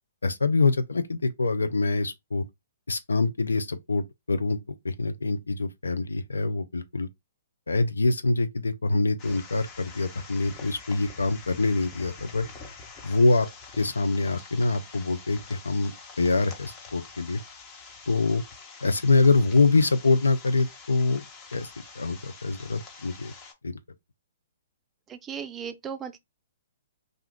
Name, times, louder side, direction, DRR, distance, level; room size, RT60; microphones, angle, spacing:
voice 1, 0.2-2.4 2.9-4.6 4.8-7.1 7.7-12.4 13.0-13.5 13.8-17.4 18.1-18.4 18.8-21.2 21.5-21.7 22.0-23.3 23.6-23.8, left 3 dB, 80° left, 0.4 m, -25 dB
sound 1, 9.2-23.5, left 4 dB, 30° left, 0.8 m, -46 dB
voice 2, 25.1-26.2, right 7 dB, 20° right, 0.4 m, -36 dB
2.5 x 2.2 x 3.5 m
figure-of-eight pair, 125°, 0 cm